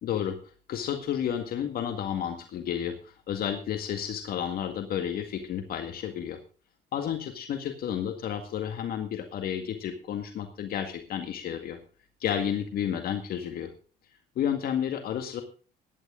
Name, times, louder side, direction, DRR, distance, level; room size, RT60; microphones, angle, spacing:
voice 1, 0.0-0.4 0.7-6.4 6.9-11.8 12.2-13.7 14.4-15.4, left 9 dB, 65° left, 6 dB, 1.9 m, -31 dB
16.0 x 11.0 x 3.8 m, 0.38 s
cardioid pair, 110°, 17 cm